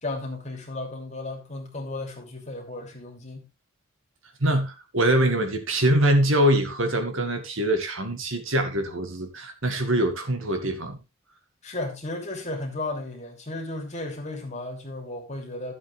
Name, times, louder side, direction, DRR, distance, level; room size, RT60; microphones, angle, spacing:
voice 1, 0.0-3.5 11.6-15.7, left 2 dB, 30° left, 2.9 m, -34 dB
voice 2, 4.4-11.0, right 1 dB, 65° right, 2.0 m, -23 dB
12.5 x 7.9 x 3.4 m
head